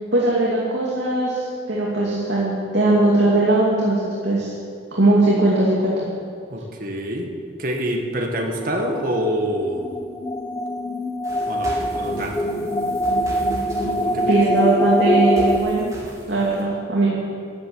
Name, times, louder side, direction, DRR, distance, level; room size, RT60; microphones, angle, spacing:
voice 1, 0.1-4.5 4.9-6.0 14.3-15.9 16.3-17.1, right 2 dB, 75° right, -5 dB, 2.5 m, -19 dB
voice 2, 6.5-7.3 7.6-9.9 11.5-12.5 13.8-14.4, equal, 50° right, 2 dB, 1.8 m, -26 dB
sound 1, 8.8-15.6, equal, 20° left, 0.9 m, -23 dB
sound 2, 11.2-16.6, equal, 20° right, 2.8 m, -39 dB
12.5 x 10.5 x 7.8 m, 2.2 s
head